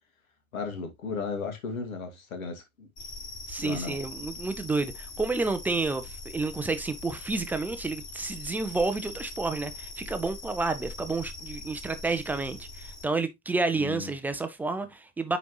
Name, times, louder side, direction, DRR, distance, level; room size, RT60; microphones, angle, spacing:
voice 1, 0.5-2.9 3.6-4.0 13.8-14.1, left 4 dB, 70° left, 2.1 m, -35 dB
sound 1, 3.0-13.0, left 3 dB, 40° left, 5.2 m, -42 dB
voice 2, 3.5-15.4, right 3 dB, 5° right, 0.3 m, -30 dB
9.2 x 4.0 x 3.0 m
figure-of-eight pair, 80°, 43 cm